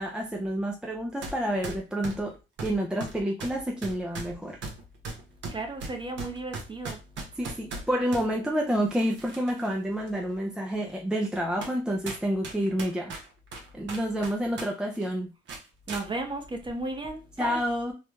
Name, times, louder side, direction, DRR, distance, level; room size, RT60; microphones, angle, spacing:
voice 1, 0.0-2.3 2.6-4.6 7.4-13.1 13.7-15.3 17.4-17.9, equal, 5° right, 0.5 m, -29 dB
sound 1, 1.2-1.4 1.6-8.3 8.9-9.7 10.1-10.2 10.9-11.0 11.6-11.8 12.1-14.7 14.9-15.1 15.5-16.0, right 3 dB, 70° right, 1.0 m, -38 dB
voice 2, 5.5-7.0 15.9-17.6, right 2 dB, 25° right, 0.8 m, -34 dB
3.2 x 2.3 x 3.1 m
cardioid pair, 90°, 20 cm